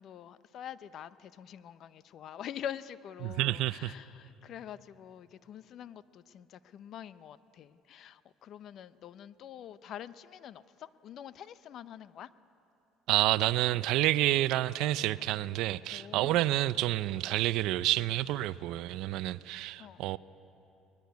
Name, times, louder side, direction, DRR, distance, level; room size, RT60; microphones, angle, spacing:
voice 1, 0.0-12.3 15.9-16.6 19.8-20.0, left 9 dB, 55° left, 0.7 m, -45 dB
voice 2, 3.2-3.9 13.1-20.2, right 15 dB, 70° right, 0.5 m, -29 dB
22.0 x 20.5 x 9.5 m
cardioid pair, 115°, 0 cm